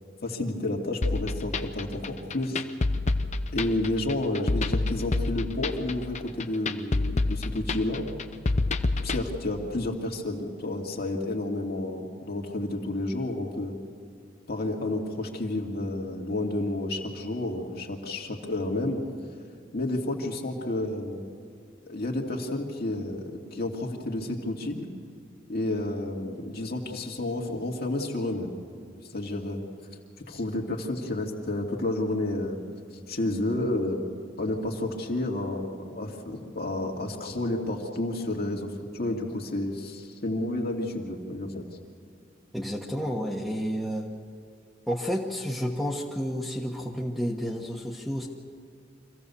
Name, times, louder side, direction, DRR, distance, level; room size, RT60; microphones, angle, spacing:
voice 1, 0.2-2.6 3.5-8.1 9.0-13.8 14.5-19.0 19.7-21.2 21.9-24.9 25.5-28.5 29.1-29.6 30.3-32.6 33.1-34.0 34.4-41.7, left 1 dB, 55° left, 1 dB, 2.2 m, -30 dB
sound 1, 1.0-9.2, left 2 dB, 40° left, 0.7 m, -28 dB
voice 2, 42.5-44.1 44.9-48.3, equal, ahead, -5 dB, 1.2 m, -30 dB
25.0 x 16.0 x 7.0 m, 2.2 s
head